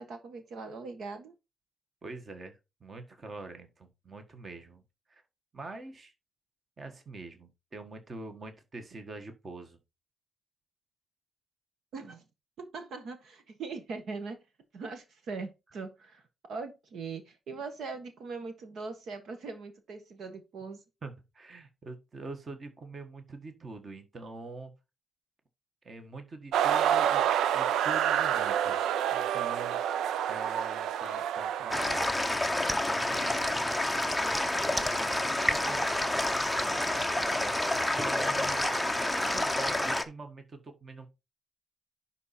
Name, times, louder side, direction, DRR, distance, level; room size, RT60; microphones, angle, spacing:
voice 1, 0.0-1.3 11.9-12.2 12.6-14.4 14.7-16.2 16.5-20.8, right 4 dB, 55° right, 1.4 m, -40 dB
voice 2, 2.0-4.8 5.1-5.2 5.5-6.1 6.8-9.8 21.0-24.7 25.8-27.2 27.5-28.8 29.1-29.8 30.3-32.1 32.6-33.6 34.4-38.7 39.2-41.1, right 3 dB, 25° right, 1.5 m, -45 dB
sound 1, 26.5-32.1, right 10 dB, 85° right, 0.5 m, -28 dB
sound 2, 31.7-40.0, left 1 dB, ahead, 0.8 m, -29 dB
11.0 x 4.2 x 4.3 m
cardioid pair, 175°, 0 cm